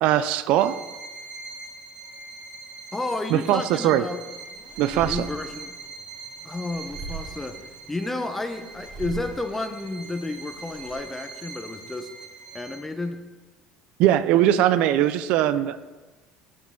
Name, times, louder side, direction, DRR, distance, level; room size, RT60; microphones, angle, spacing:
voice 1, 0.0-0.7 3.3-4.0 4.8-5.3 14.0-15.8, right 12 dB, 65° right, 13 dB, 0.3 m, -20 dB
Bowed string instrument, 0.6-13.1, right 4 dB, 50° right, 0.8 m, -42 dB
voice 2, 2.9-4.2 4.9-5.8 6.4-7.6 7.9-12.1 12.5-13.2, left 2 dB, 10° left, 8 dB, 0.5 m, -31 dB
sound 1, 4.1-10.9, right 4 dB, 30° left, 1.0 m, -41 dB
7.0 x 6.0 x 3.6 m, 1.2 s
cardioid pair, 120°, 2 cm